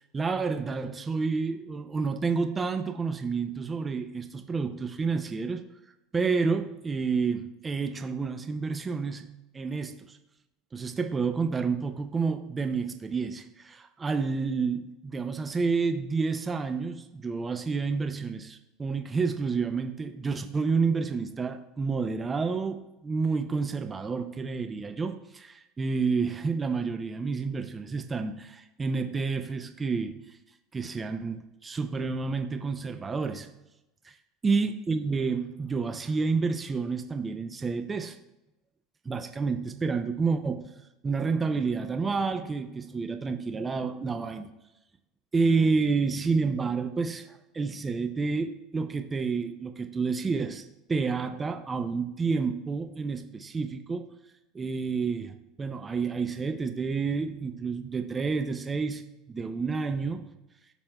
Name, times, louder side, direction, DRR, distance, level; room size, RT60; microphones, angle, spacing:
voice 1, 0.1-5.6 6.1-10.2 10.7-30.2 30.7-33.5 34.4-38.2 39.1-40.7 41.0-44.5 45.3-54.1 54.5-59.0 59.3-60.3, right 4 dB, 20° right, 7 dB, 0.5 m, -29 dB
12.0 x 4.3 x 2.3 m, 0.91 s
supercardioid pair, 110°, 0 cm